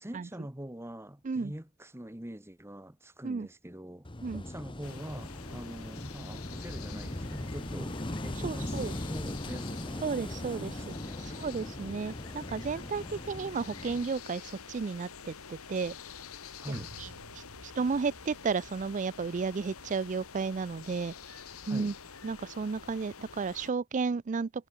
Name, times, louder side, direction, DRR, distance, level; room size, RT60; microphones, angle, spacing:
voice 1, 0.0-4.1 4.4-11.5 16.6-17.0 21.7-21.9, right 1 dB, 10° right, 1.2 m, -44 dB
Wind / Waves surf, 4.0-14.0, left 1 dB, 25° left, 1.3 m, -39 dB
sound 1, 4.8-23.7, left 6 dB, 90° left, 1.9 m, -48 dB
voice 2, 8.4-8.9 10.0-10.8 11.2-15.9 17.0-21.9 22.2-24.7, right 4 dB, 35° right, 0.4 m, -33 dB
sound 2, 16.7-21.2 21.5-21.6, right 1 dB, 70° right, 2.4 m, -52 dB
head